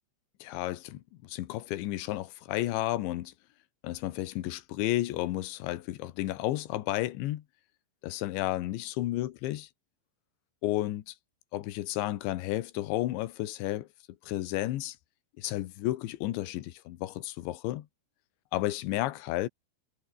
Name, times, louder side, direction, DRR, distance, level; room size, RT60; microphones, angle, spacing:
voice 1, 0.4-3.3 3.8-7.4 8.0-9.7 10.6-11.2 11.5-13.9 14.2-15.0 15.4-17.9 18.5-19.5, left 15 dB, 75° left, 3.5 m, -32 dB
omnidirectional pair, 5.5 m